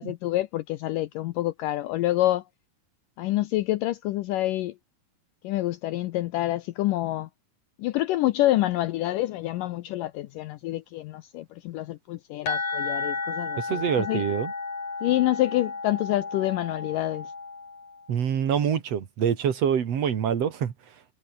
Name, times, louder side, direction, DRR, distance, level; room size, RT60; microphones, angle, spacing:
voice 1, 0.0-2.4 3.2-4.7 5.4-7.3 7.8-14.2 15.0-17.3, left 15 dB, 80° left, 2.0 m, -27 dB
sound 1, 12.5-18.1, left 4 dB, 40° left, 6.8 m, -33 dB
voice 2, 13.6-14.5 18.1-20.7, right 8 dB, 50° right, 2.4 m, -25 dB
omnidirectional pair, 4.6 m